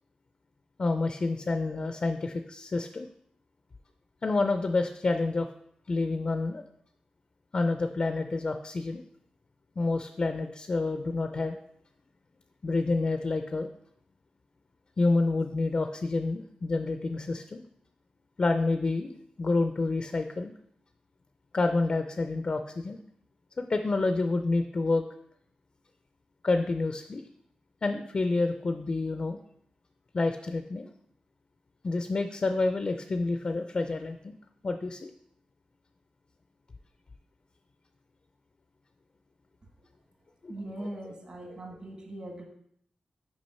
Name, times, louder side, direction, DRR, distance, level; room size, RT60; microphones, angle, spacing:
voice 1, 0.8-3.1 4.2-5.5 5.9-6.6 7.5-9.0 9.8-11.6 12.6-13.7 15.0-17.6 18.4-19.1 19.4-20.5 21.5-23.0 23.6-25.0 26.4-27.2 27.8-29.4 30.1-30.9 31.8-34.3 34.6-35.1 40.4-40.5, left 3 dB, 40° left, 7 dB, 0.4 m, -28 dB
voice 2, 40.5-42.5, right 1 dB, 45° right, 1 dB, 1.5 m, -40 dB
6.2 x 5.1 x 4.2 m, 0.71 s
wide cardioid pair, 100°, 3 cm